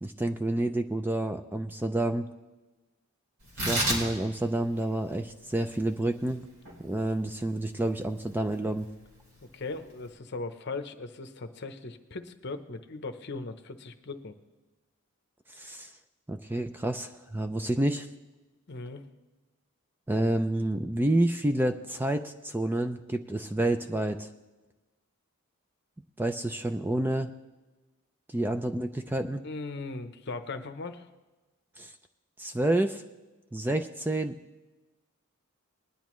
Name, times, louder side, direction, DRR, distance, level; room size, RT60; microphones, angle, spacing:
voice 1, 0.0-2.2 3.7-6.5 6.8-8.9 15.5-15.9 16.3-18.1 20.1-24.3 26.2-27.3 28.3-29.4 31.8-31.9 32.4-33.0 33.5-34.4, right 1 dB, 10° right, 7 dB, 0.3 m, -29 dB
Tearing, 3.4-10.1, right 1 dB, 65° right, 3.4 m, -36 dB
voice 2, 9.4-14.3 18.7-19.0 29.4-31.1, left 3 dB, 50° left, 8 dB, 0.8 m, -38 dB
20.5 x 10.5 x 3.1 m, 1.2 s
head